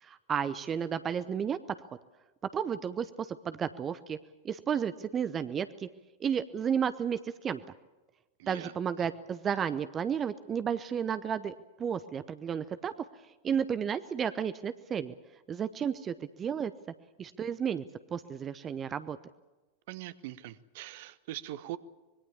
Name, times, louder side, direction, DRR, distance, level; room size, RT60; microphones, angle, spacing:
voice 1, 0.0-1.6 2.5-4.2 4.4-5.9 6.2-7.6 8.5-12.9 13.4-15.1 15.5-16.7 17.2-17.8 18.1-19.2, right 7 dB, 25° right, 14 dB, 0.8 m, -32 dB
voice 2, 8.4-8.7 9.0-9.1 19.9-21.8, right 14 dB, 50° right, 16 dB, 1.1 m, -42 dB
25.5 x 21.5 x 7.1 m, 1.2 s
figure-of-eight pair, 90°, 0 cm